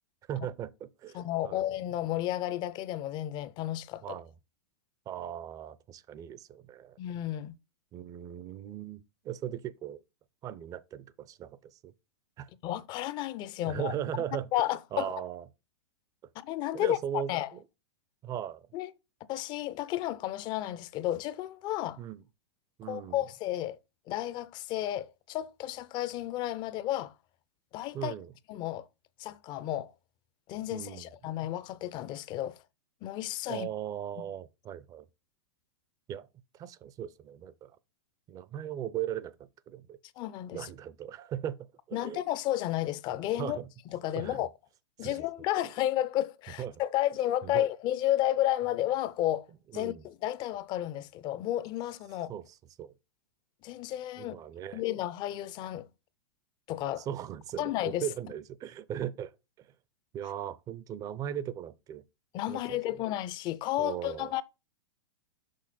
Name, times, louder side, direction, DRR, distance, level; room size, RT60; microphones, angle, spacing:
voice 1, 0.3-1.6 4.0-4.3 5.1-7.0 7.9-10.0 10.4-11.9 12.4-12.5 13.6-14.5 14.9-15.4 16.7-17.3 18.2-18.7 22.0-22.2 22.8-23.2 27.9-28.3 30.7-31.1 33.5-35.0 36.1-36.3 36.5-37.7 38.3-39.4 39.7-40.0 40.5-41.6 41.9-42.2 43.4-43.7 44.1-44.5 45.0-45.2 46.6-46.8 47.4-47.7 49.7-50.0 52.3-52.4 52.8-52.9 54.2-54.8 57.1-59.3 60.1-62.0 62.5-62.8 63.8-64.3, right 10 dB, 25° right, 0.5 m, -38 dB
voice 2, 1.1-4.2 7.0-7.5 12.6-13.9 14.5-15.1 16.4-17.5 18.7-18.9 19.3-22.0 22.9-23.8 24.1-27.1 27.7-28.1 28.5-28.9 29.2-29.9 30.5-32.6 33.0-33.7 34.2-34.3 40.2-40.7 41.9-43.6 43.9-44.5 45.0-49.5 49.7-52.3 53.6-54.4 54.7-55.9 56.7-57.1 57.6-58.0 62.3-64.4, left 13 dB, 30° left, 0.5 m, -32 dB
6.4 x 5.7 x 4.1 m
hypercardioid pair, 130°, 14 cm